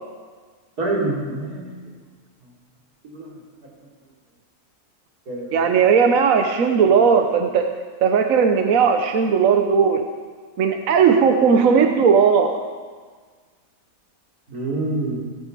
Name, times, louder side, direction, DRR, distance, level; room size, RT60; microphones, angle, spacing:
voice 1, 0.8-1.8 3.1-3.3 5.3-5.6 14.5-15.2, right 2 dB, 90° right, -3 dB, 3.7 m, -26 dB
voice 2, 5.5-7.7 8.0-10.0 10.6-12.6, right 6 dB, 65° right, 6 dB, 1.2 m, -17 dB
16.5 x 8.5 x 6.7 m, 1.5 s
omnidirectional pair, 1.6 m